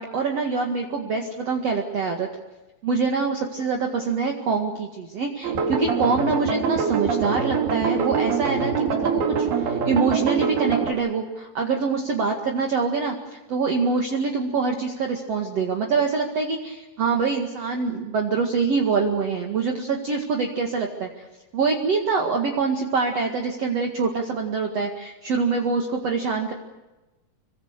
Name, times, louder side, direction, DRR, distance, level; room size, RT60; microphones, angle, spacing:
voice 1, 0.0-2.3 2.8-13.2 13.5-21.2 21.5-26.5, right 4 dB, 50° right, 2 dB, 2.6 m, -25 dB
sound 1, 5.4-10.9, right 6 dB, 80° right, 4.9 m, -24 dB
27.0 x 24.0 x 6.7 m, 1.1 s
omnidirectional pair, 4.4 m